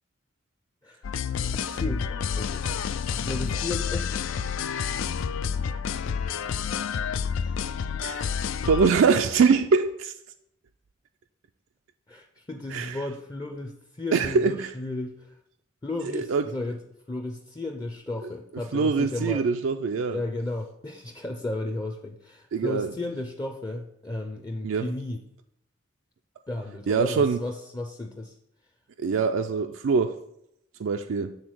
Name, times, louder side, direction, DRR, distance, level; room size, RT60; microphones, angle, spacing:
sound 1, 1.0-8.9, left 6 dB, 90° left, 0.4 m, -29 dB
voice 1, 1.5-2.1 2.4-2.7 2.9-4.2 7.4-7.6 12.1-15.4 15.8-16.8 17.1-19.4 20.1-25.2 26.5-28.3, left 2 dB, 20° left, 0.5 m, -34 dB
voice 2, 8.6-10.1 12.7-13.0 14.1-14.7 16.1-16.5 18.7-20.2 22.5-22.9 24.6-24.9 26.9-27.4 29.0-30.2 30.8-31.4, right 5 dB, 85° right, 0.4 m, -23 dB
8.0 x 3.7 x 6.3 m
head